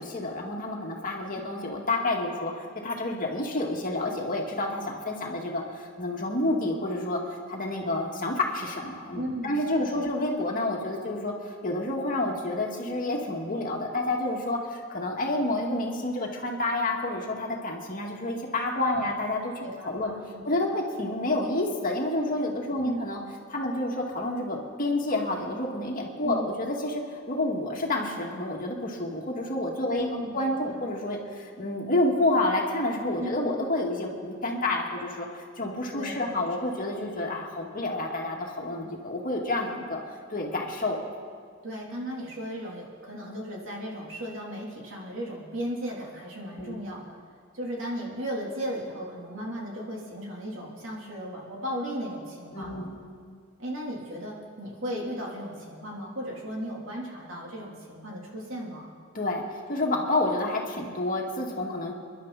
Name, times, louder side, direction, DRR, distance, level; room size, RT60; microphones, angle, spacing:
voice 1, 0.0-7.2 7.5-20.1 20.4-23.2 23.5-30.1 30.3-35.3 35.6-40.0 40.3-41.0 46.6-46.8 52.5-53.0 59.1-61.9, left 2 dB, 45° left, 0 dB, 2.2 m, -29 dB
voice 2, 9.1-10.1 18.7-19.1 19.6-20.4 22.8-23.0 26.2-26.5 29.9-30.3 30.7-30.8 33.2-33.6 35.9-36.4 41.6-47.1 47.5-52.9 53.6-58.9, equal, 75° right, -3 dB, 3.4 m, -36 dB
29.0 x 11.0 x 4.2 m, 2.1 s
head